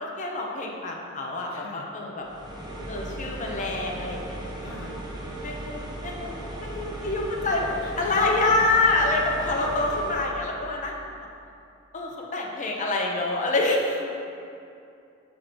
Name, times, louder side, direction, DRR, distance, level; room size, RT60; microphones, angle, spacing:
voice 1, 0.0-2.3 2.9-4.7 5.4-7.7 8.0-11.0 11.9-14.0, left 2 dB, 40° left, -1 dB, 0.8 m, -26 dB
voice 2, 1.5-1.9 4.6-5.0 7.8-8.5 14.0-14.1, left 2 dB, 70° left, 1 dB, 0.6 m, -44 dB
sound 1, 2.2-10.3, right 1 dB, 20° right, 0.7 m, -37 dB
6.4 x 4.9 x 4.5 m, 2.6 s
head